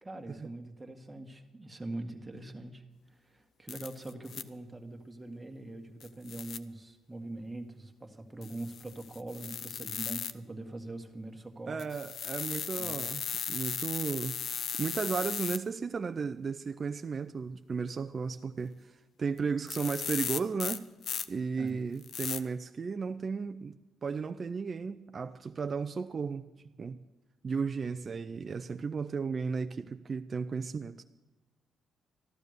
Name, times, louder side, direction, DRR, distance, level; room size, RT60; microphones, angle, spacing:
voice 1, 0.0-2.8 3.1-11.9 12.8-13.0 21.6-21.8, right 2 dB, 15° right, 1.8 m, -43 dB
sound 1, 3.7-4.4 6.0-6.6 8.4-10.3 11.8-15.6 19.4-19.5 19.7-21.2 22.0-22.4, left 7 dB, 60° left, 0.7 m, -36 dB
voice 2, 11.7-13.2 13.5-14.4 14.8-20.9 21.3-26.5 26.8-27.0 27.4-31.0, right 5 dB, 40° right, 0.6 m, -34 dB
13.5 x 12.0 x 6.6 m
cardioid pair, 90°, 0 cm